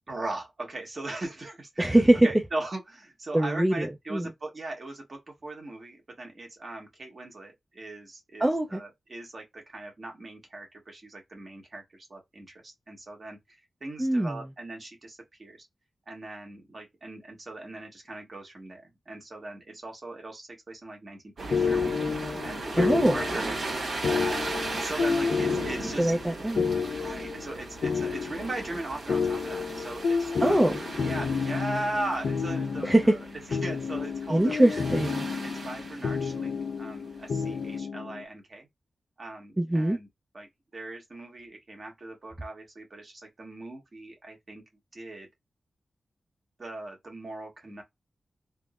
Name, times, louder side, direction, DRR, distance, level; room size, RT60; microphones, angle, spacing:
voice 1, 0.1-2.0 2.2-13.4 13.8-15.7 16.1-22.0 22.4-23.6 24.0-26.1 27.0-33.2 33.6-34.8 35.4-38.7 39.2-40.1 40.3-44.6 44.9-45.3 46.6-47.8, right 2 dB, 40° right, 1.4 m, -39 dB
voice 2, 1.8-2.3 3.3-4.3 8.4-8.8 14.0-14.4 22.8-23.2 26.0-26.7 30.4-30.8 32.8-33.1 34.3-35.3 39.6-40.0, right 1 dB, 10° right, 0.4 m, -23 dB
sound 1, 21.4-36.7 37.4-37.6, right 3 dB, 65° right, 1.4 m, -37 dB
sound 2, 21.5-38.2, left 5 dB, 70° left, 0.4 m, -30 dB
3.6 x 2.0 x 2.3 m
wide cardioid pair, 130°, 0 cm